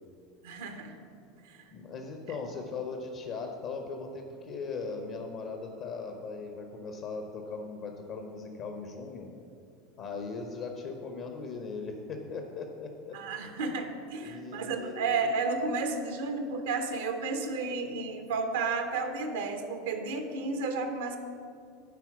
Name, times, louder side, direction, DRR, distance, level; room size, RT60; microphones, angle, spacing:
voice 1, 0.4-1.0 1.4-1.6 13.1-21.2, right 4 dB, 65° right, 6 dB, 0.8 m, -32 dB
voice 2, 1.7-9.3 10.0-13.2 14.2-15.0, left 4 dB, 50° left, 3 dB, 0.9 m, -39 dB
9.5 x 4.5 x 7.1 m, 2.4 s
figure-of-eight pair, 75°, 0 cm